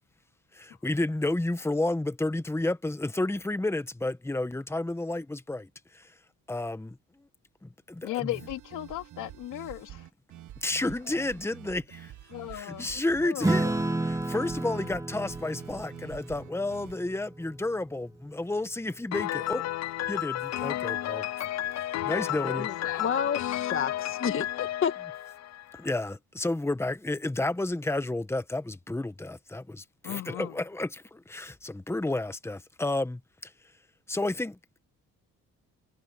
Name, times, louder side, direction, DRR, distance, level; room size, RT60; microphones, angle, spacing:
voice 1, 0.5-6.1 6.5-7.0 7.6-8.3 10.6-12.1 12.5-13.7 14.0-19.6 20.1-21.2 22.0-22.7 25.7-33.5 34.1-34.6, left 2 dB, 10° left, 1.5 m, -31 dB
voice 2, 8.0-10.0 11.1-11.2 12.3-12.9 13.2-13.8 22.1-22.6 22.8-23.2 30.0-30.5, left 15 dB, 90° left, 3.4 m, -37 dB
sound 1, 8.3-16.9, right 12 dB, 75° right, 1.8 m, -47 dB
Acoustic guitar / Strum, 13.4-18.3, right 2 dB, 10° right, 2.2 m, -32 dB
Piano, 19.1-25.9, left 13 dB, 60° left, 0.6 m, -32 dB
voice 3, 23.0-24.9, left 7 dB, 45° left, 1.7 m, -30 dB
cardioid pair, 90°, 30 cm